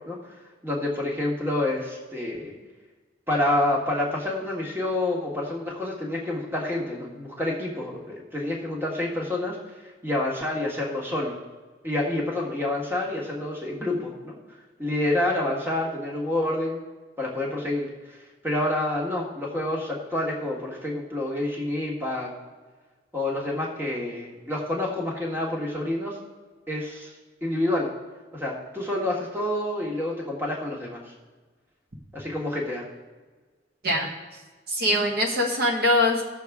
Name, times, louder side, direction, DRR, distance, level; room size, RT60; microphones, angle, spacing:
voice 1, 0.6-2.5 3.3-9.6 10.0-11.3 11.8-14.4 14.8-16.8 17.2-17.9 18.4-22.3 23.1-26.2 26.7-27.1 27.4-27.9 28.3-31.0 32.1-32.9, left 1 dB, 10° right, -3 dB, 1.6 m, -28 dB
voice 2, 34.7-36.2, left 1 dB, 55° right, 0 dB, 1.3 m, -22 dB
16.0 x 6.5 x 3.6 m, 1.3 s
head